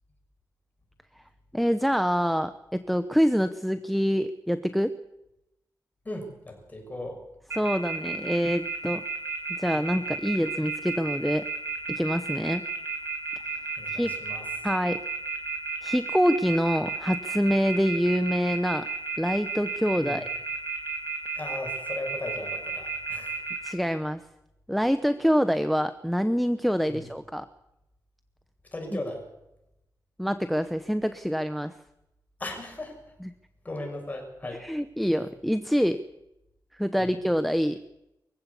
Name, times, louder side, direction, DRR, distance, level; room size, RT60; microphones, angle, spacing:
voice 1, 1.5-4.9 7.6-9.0 9.6-11.4 11.9-12.6 13.9-14.1 14.6-15.0 15.8-18.9 19.2-20.3 23.6-24.2 24.7-27.5 30.2-31.7 33.2-33.3 34.6-36.0 36.7-37.8, equal, ahead, 11 dB, 0.8 m, -26 dB
voice 2, 6.0-7.2 13.8-14.5 20.0-20.2 21.4-23.5 26.9-27.0 28.7-29.2 32.4-33.0 33.6-34.7 37.0-37.1, left 1 dB, 25° left, 2 dB, 6.7 m, -37 dB
sound 1, 7.5-23.7, right 5 dB, 40° right, 5.1 m, -32 dB
23.5 x 15.5 x 8.4 m, 0.89 s
wide cardioid pair, 135°, 7 cm